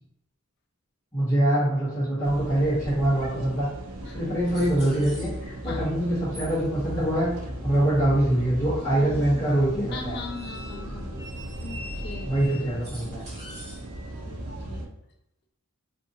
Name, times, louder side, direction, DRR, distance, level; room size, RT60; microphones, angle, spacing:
voice 1, 1.1-3.7 4.1-7.3 7.6-10.1 12.2-13.2, right 1 dB, 15° left, -12 dB, 1.0 m, -24 dB
sound 1, 2.2-14.9, right 1 dB, 80° right, 0.5 m, -39 dB
sound 2, 4.5-5.7 6.3-7.7 10.0-14.2, equal, 35° right, 1.4 m, -45 dB
sound 3, 4.6-12.5, equal, 10° right, 1.3 m, -38 dB
voice 2, 9.9-11.1 11.6-12.3 14.2-14.9, left 4 dB, 50° left, 3 dB, 0.5 m, -39 dB
2.6 x 2.5 x 2.7 m, 0.82 s
head